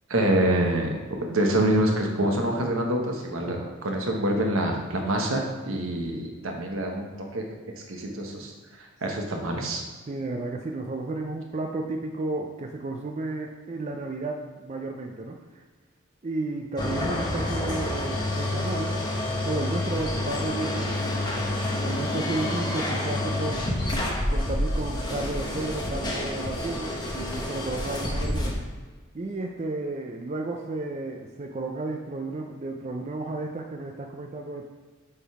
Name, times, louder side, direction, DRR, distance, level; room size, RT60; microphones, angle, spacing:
voice 1, 0.1-7.4 7.9-8.5 9.0-9.8, right 1 dB, 80° right, 1 dB, 1.1 m, -26 dB
voice 2, 10.1-15.6 16.2-19.0 19.4-20.9 21.8-23.8 24.3-28.6 29.1-34.6, right 2 dB, 35° right, 2 dB, 0.4 m, -33 dB
sound 1, 16.8-28.5, left 1 dB, 20° left, 0.9 m, -28 dB
6.9 x 3.7 x 4.8 m, 1.4 s
head